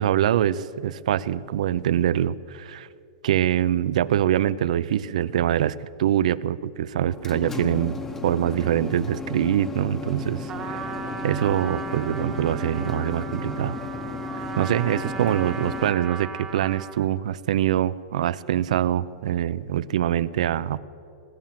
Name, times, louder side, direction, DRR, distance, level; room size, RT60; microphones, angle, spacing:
voice 1, 0.0-2.9 3.2-10.5 11.2-13.8 14.6-20.8, right 11 dB, 70° right, 17 dB, 0.5 m, -24 dB
sound 1, 7.0-15.9, left 3 dB, 10° left, 0.8 m, -34 dB
Trumpet, 10.5-17.1, right 6 dB, 15° right, 0.9 m, -36 dB
20.5 x 7.5 x 7.5 m, 2.5 s
supercardioid pair, 165°, 4 cm